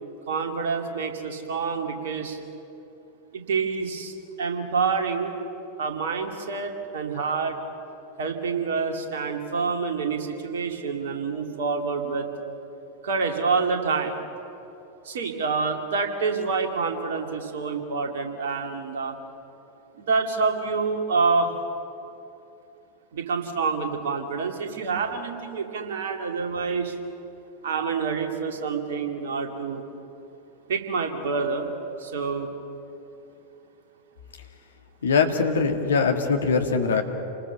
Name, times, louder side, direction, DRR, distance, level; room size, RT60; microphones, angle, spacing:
voice 1, 0.3-2.4 3.3-5.4 5.8-7.6 8.2-12.3 13.0-14.2 15.0-19.1 19.9-21.5 23.1-26.9 27.6-29.8 30.7-31.7 32.0-32.5, right 4 dB, 60° right, 4 dB, 2.6 m, -27 dB
voice 2, 35.0-37.0, left 5 dB, 65° left, 4 dB, 1.9 m, -22 dB
28.5 x 20.5 x 7.0 m, 2.9 s
figure-of-eight pair, 90°, 0 cm